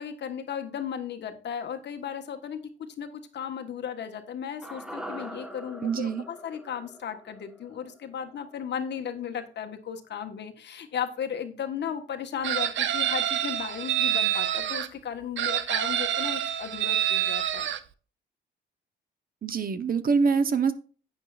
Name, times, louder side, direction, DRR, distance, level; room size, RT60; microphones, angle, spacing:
voice 1, 0.0-17.7, left 8 dB, 60° left, 6 dB, 1.4 m, -35 dB
sound 1, 4.6-8.9 9.2-9.3, equal, 5° right, 1.3 m, -43 dB
voice 2, 5.8-6.2 19.4-20.7, right 5 dB, 45° right, 11 dB, 1.0 m, -24 dB
Chicken rooster, 12.4-14.9 15.4-17.8, right 11 dB, 70° right, 0.7 m, -27 dB
10.5 x 8.8 x 2.5 m, 0.39 s
cardioid pair, 90°, 20 cm